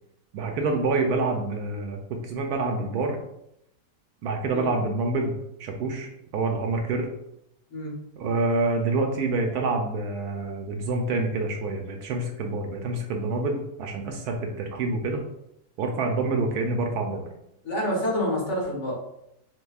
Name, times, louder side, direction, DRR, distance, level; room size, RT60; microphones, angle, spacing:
voice 1, 0.3-3.2 4.2-7.1 8.2-15.2 15.8-17.2, right 3 dB, 70° right, 3 dB, 1.1 m, -27 dB
voice 2, 17.6-18.9, left 1 dB, 45° left, -4 dB, 1.4 m, -28 dB
6.2 x 2.7 x 2.3 m, 0.79 s
omnidirectional pair, 1.8 m